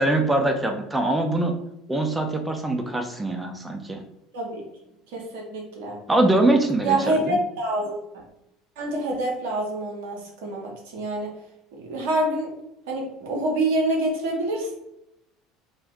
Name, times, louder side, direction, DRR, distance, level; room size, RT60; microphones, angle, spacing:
voice 1, 0.0-1.5 1.9-4.0 6.1-7.4, right 2 dB, 10° right, 4 dB, 0.5 m, -23 dB
voice 2, 4.3-4.6 5.1-6.0 6.8-8.1 8.8-11.4 11.7-12.5 12.9-14.7, right 1 dB, 60° right, -1 dB, 0.7 m, -26 dB
2.4 x 2.2 x 3.6 m, 0.85 s
figure-of-eight pair, 65°, 0 cm